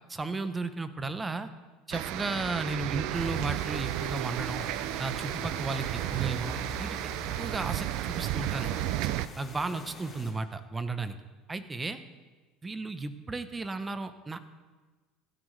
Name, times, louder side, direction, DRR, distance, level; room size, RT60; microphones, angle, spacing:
voice 1, 0.1-1.5 1.9-4.6 5.0-7.0 7.4-8.9 9.4-11.2 11.5-12.0 12.6-14.4, right 3 dB, 15° right, 11 dB, 0.8 m, -34 dB
sound 1, 1.9-9.3, right 15 dB, 65° right, 0.4 m, -33 dB
sound 2, 3.1-10.3, left 2 dB, 25° left, 4.8 m, -45 dB
15.5 x 13.0 x 3.3 m, 1.3 s
supercardioid pair, 120°, 0 cm